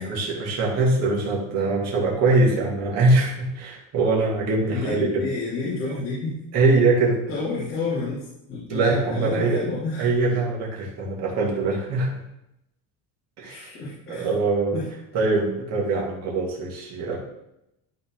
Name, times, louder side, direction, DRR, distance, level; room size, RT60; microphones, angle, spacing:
voice 1, 0.0-5.3 6.5-7.2 8.7-9.6 10.0-12.2 13.4-13.7 14.1-14.8 15.1-17.2, right 3 dB, 45° right, -2 dB, 2.2 m, -22 dB
voice 2, 4.7-6.4 7.3-10.1 13.4-14.3 14.7-14.9, left 3 dB, 35° left, -10 dB, 2.8 m, -30 dB
12.0 x 4.1 x 3.7 m, 0.85 s
cardioid pair, 170°, 35 cm